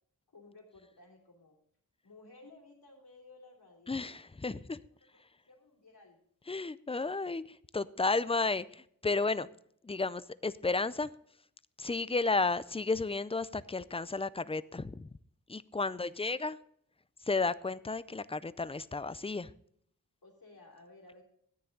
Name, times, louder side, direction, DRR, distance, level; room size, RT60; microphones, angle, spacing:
voice 1, 0.3-1.6 2.0-4.2 4.9-6.2 15.8-16.3 20.2-21.2, left 2 dB, 90° left, -5 dB, 3.0 m, -57 dB
voice 2, 3.9-4.8 6.5-7.4 7.7-9.5 9.8-11.1 11.8-15.1 15.5-16.6 17.3-19.5, left 3 dB, 15° left, 16 dB, 0.4 m, -32 dB
13.5 x 9.5 x 3.9 m, 0.66 s
wide cardioid pair, 85°, 36 cm